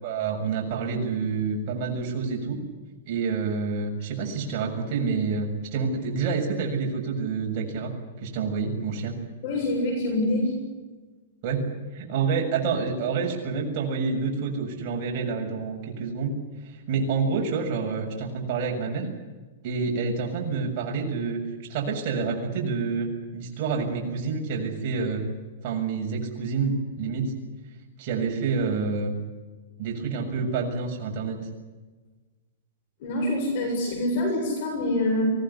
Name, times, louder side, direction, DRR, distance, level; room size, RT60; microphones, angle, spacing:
voice 1, 0.0-2.6 3.1-7.9 8.2-9.1 11.4-11.6 11.9-16.3 16.6-19.1 19.6-21.4 21.7-23.1 23.3-25.3 25.6-27.3 28.0-29.1 29.8-31.4, right 5 dB, 35° right, 0 dB, 7.2 m, -28 dB
voice 2, 9.4-10.5 33.0-35.3, left 1 dB, 45° left, 3 dB, 7.4 m, -25 dB
24.5 x 18.0 x 9.9 m, 1.3 s
supercardioid pair, 170°, 0 cm